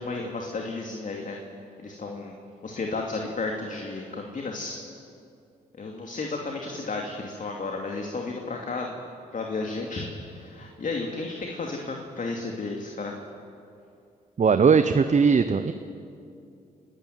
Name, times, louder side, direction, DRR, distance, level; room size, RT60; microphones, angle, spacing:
voice 1, 0.0-1.4 1.8-2.3 2.6-4.8 5.7-9.0 9.3-13.2, left 3 dB, 45° left, 1 dB, 2.7 m, -33 dB
voice 2, 14.4-15.7, right 5 dB, 40° right, 10 dB, 1.0 m, -19 dB
25.5 x 12.5 x 9.3 m, 2.5 s
supercardioid pair, 50°, 18 cm